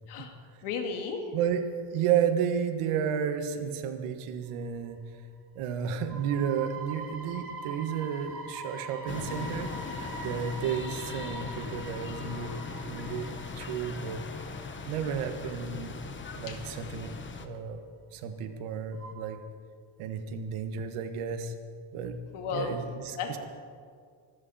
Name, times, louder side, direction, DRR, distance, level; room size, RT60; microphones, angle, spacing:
voice 1, 0.6-1.2 16.5-16.6 22.3-22.8 23.2-23.4, left 5 dB, 75° left, 3 dB, 2.3 m, -33 dB
voice 2, 1.3-1.7 1.9-5.0 5.6-9.7 10.2-13.3 13.6-14.2 14.8-15.9 16.3-17.1 17.4-17.8 18.1-19.4 20.0-21.5 21.9-22.2 22.5-23.4, right 7 dB, 85° right, 7 dB, 1.6 m, -32 dB
sound 1, 4.6-4.9 5.3-5.4 6.0-16.1 16.4-16.5 18.9-19.1, right 3 dB, 25° right, 2.5 m, -43 dB
sound 2, 9.1-17.5, left 4 dB, 25° left, 1.1 m, -39 dB
24.5 x 14.0 x 4.3 m, 2.1 s
cardioid pair, 140°, 50 cm